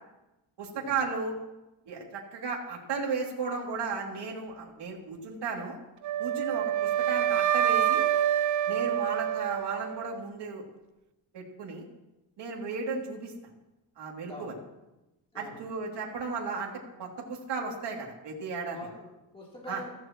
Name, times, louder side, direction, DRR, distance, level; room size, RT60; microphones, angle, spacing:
voice 1, 0.6-1.3 1.9-5.8 6.2-8.0 8.7-10.6 11.3-11.9 12.4-13.3 14.0-14.5 15.3-16.7 17.0-18.8 19.7-19.8, right 4 dB, 60° right, -1 dB, 2.9 m, -35 dB
Wind instrument woodwind instrument, 6.0-10.1, right 10 dB, 40° right, 0.4 m, -27 dB
voice 2, 15.3-15.6 18.7-19.9, left 1 dB, 10° left, -4 dB, 3.3 m, -44 dB
15.5 x 15.0 x 3.1 m, 0.97 s
cardioid pair, 160°, 46 cm